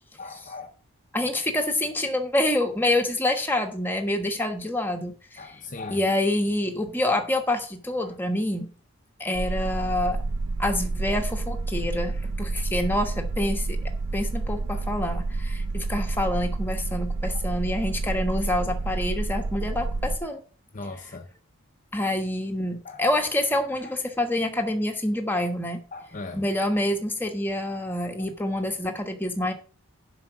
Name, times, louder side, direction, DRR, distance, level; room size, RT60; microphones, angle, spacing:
voice 1, 0.2-0.7 5.4-6.0 8.0-8.1 14.7-15.0 17.3-17.5 20.7-21.3 22.8-23.0 23.8-23.9 25.9-26.4 27.9-28.0 28.2-28.3, left 3 dB, 35° left, 0.8 m, -39 dB
voice 2, 1.1-5.4 5.9-8.7 9.2-10.2 10.6-13.8 14.1-20.4 21.9-25.8 26.3-29.5, left 1 dB, 10° left, 1.2 m, -27 dB
sound 1, 9.3-20.2, right 3 dB, 75° right, 0.8 m, -29 dB
7.4 x 5.8 x 7.1 m
head